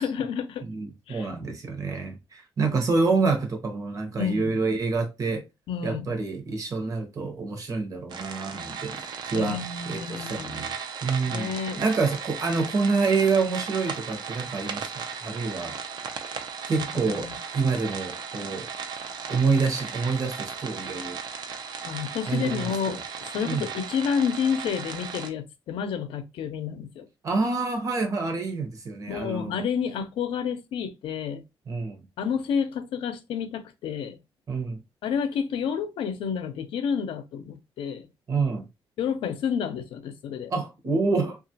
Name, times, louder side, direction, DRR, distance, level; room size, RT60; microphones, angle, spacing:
voice 1, 0.0-0.6 1.1-1.3 4.2-4.6 5.7-6.1 9.3-10.6 11.3-11.8 16.9-17.3 21.8-27.1 29.1-31.4 32.2-34.2 35.0-38.1 39.0-40.5, left 7 dB, 80° left, 0.5 m, -30 dB
voice 2, 0.7-5.4 5.8-10.7 11.0-14.9 15.2-15.8 16.7-17.3 17.5-18.7 19.3-21.2 22.3-22.7 23.4-23.7 27.2-29.6 31.7-32.0 34.5-34.8 38.3-38.6 40.5-41.4, right 4 dB, 40° right, 0.9 m, -27 dB
sound 1, 8.1-25.3, right 6 dB, 55° right, 0.5 m, -36 dB
2.9 x 2.4 x 2.7 m
cardioid pair, 140°, 9 cm